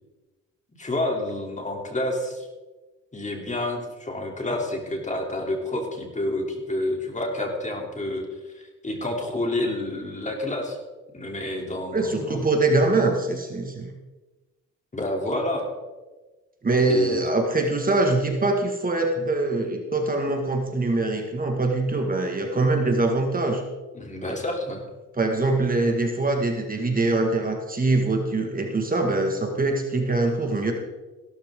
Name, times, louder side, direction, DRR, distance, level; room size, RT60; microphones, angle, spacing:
voice 1, 0.8-2.5 3.1-10.8 11.1-12.5 14.9-15.7 16.9-17.2 23.9-24.8, left 1 dB, 25° left, 1 dB, 3.2 m, -29 dB
voice 2, 11.9-13.9 16.6-23.6 25.2-30.7, right 2 dB, 30° right, 3 dB, 1.9 m, -23 dB
16.0 x 13.0 x 3.8 m, 1.2 s
cardioid pair, 90°, 30 cm